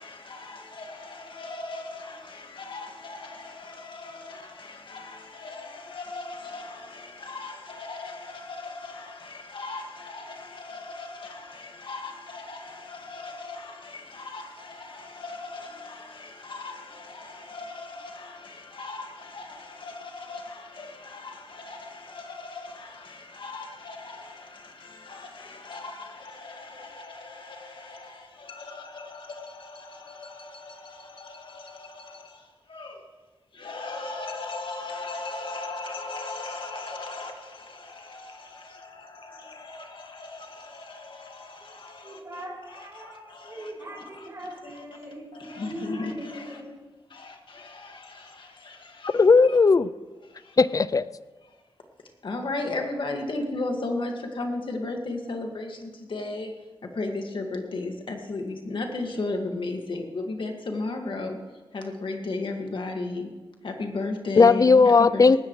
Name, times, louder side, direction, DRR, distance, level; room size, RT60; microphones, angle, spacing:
voice 1, 1.4-2.2 2.7-3.5 3.9-4.2 4.9-5.2 5.4-6.7 7.3-9.1 9.5-11.1 11.9-12.6 12.9-13.7 14.2-14.4 15.2-16.0 16.5-16.7 17.5-18.2 18.8-19.0 19.3-19.4 19.8-19.9 20.3-20.4 20.8-20.9 21.2-21.3 21.7-21.8 22.5-22.6 23.4-24.1 25.1-25.3 25.7-26.1 26.4-26.5 26.8-27.1 27.9-28.0 28.6-29.1 32.8-32.9 33.6-37.3 45.4-46.4 52.2-55.7 56.1-56.5 57.0-61.4 61.7-63.3 63.6-65.4, left 2 dB, 60° left, 2.0 m, -34 dB
voice 2, 42.0-46.7, right 1 dB, 35° right, 3.8 m, -40 dB
voice 3, 49.1-49.9 50.6-51.0 64.4-65.4, left 4 dB, 40° left, 0.4 m, -17 dB
18.5 x 14.0 x 3.2 m
wide cardioid pair, 95°, 10 cm